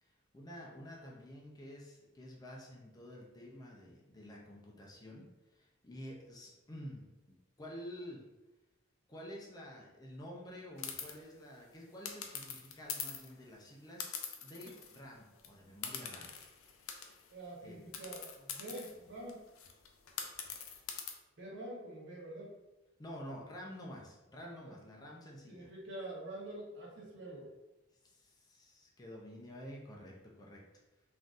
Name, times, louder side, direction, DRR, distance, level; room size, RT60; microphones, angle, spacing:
voice 1, 0.0-7.1 7.6-8.3 9.1-16.3 17.6-17.8 23.0-25.7 28.0-30.7, equal, 20° left, -2 dB, 0.5 m, -50 dB
sound 1, 10.8-11.1 12.0-13.3 14.0-15.1 15.3-15.5 15.8-17.3 17.9-21.1, left 7 dB, 80° left, 0.5 m, -43 dB
voice 2, 17.3-19.4 21.4-22.5 24.6-24.7 25.5-27.5, right 1 dB, 60° right, -4 dB, 1.0 m, -46 dB
3.7 x 2.6 x 2.4 m, 1.0 s
head